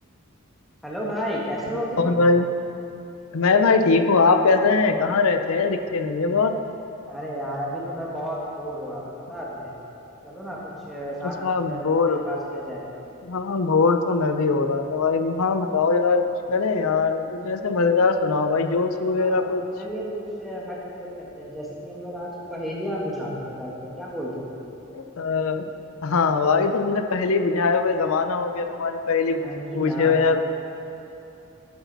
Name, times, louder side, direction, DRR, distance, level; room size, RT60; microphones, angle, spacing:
voice 1, 0.8-2.1 7.1-9.0 9.3-9.7 10.2-12.9 19.1-24.5 29.3-30.4, equal, ahead, -6 dB, 1.5 m, -33 dB
voice 2, 2.0-2.5 3.3-6.6 11.2-12.6 13.2-16.2 16.5-19.7 24.9-25.7 26.0-29.4 29.7-30.4, left 4 dB, 75° left, 7 dB, 0.6 m, -21 dB
12.5 x 8.2 x 4.0 m, 2.9 s
head